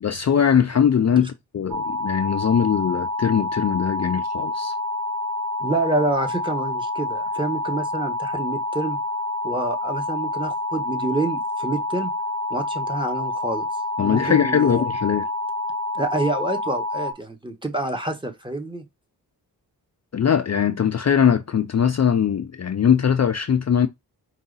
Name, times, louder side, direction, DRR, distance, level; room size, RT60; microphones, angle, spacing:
voice 1, 0.0-4.7 14.0-15.3 20.1-23.9, left 8 dB, 40° left, 0.5 m, -21 dB
sound 1, 1.7-17.1, left 2 dB, 65° right, 1.7 m, -28 dB
voice 2, 5.6-9.0 9.4-12.1 12.5-13.7 14.0-14.8 15.9-18.8, right 2 dB, 10° right, 1.3 m, -27 dB
4.7 x 2.7 x 4.0 m
cardioid pair, 55°, 41 cm